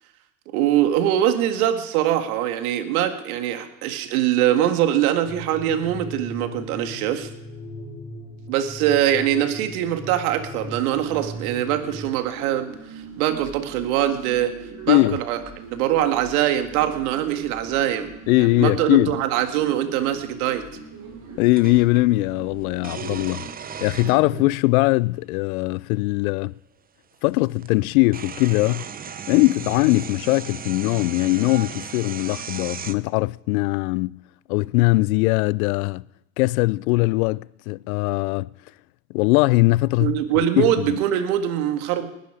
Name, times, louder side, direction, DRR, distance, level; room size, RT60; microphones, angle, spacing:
voice 1, 0.5-7.3 8.5-12.7 13.2-14.5 14.8-15.4 15.7-18.1 18.4-20.6 40.0-42.1, right 11 dB, 70° right, 2.0 m, -23 dB
sound 1, 5.2-12.1, equal, 30° left, 6.1 m, -38 dB
sound 2, 10.6-23.5, right 3 dB, 40° right, 8.0 m, -41 dB
voice 2, 14.9-15.2 18.3-19.2 21.4-23.5 23.8-26.5 27.2-28.8 29.3-34.2 34.5-36.0 36.4-38.5 39.1-40.2 40.6-41.0, left 22 dB, 70° left, 0.6 m, -20 dB
sound 3, 19.9-20.0 21.6-22.1 22.8-24.6 25.6-25.7 27.1-27.2 27.6-32.9, right 7 dB, 20° right, 0.7 m, -36 dB
19.5 x 11.5 x 5.0 m
hypercardioid pair, 100°, 45 cm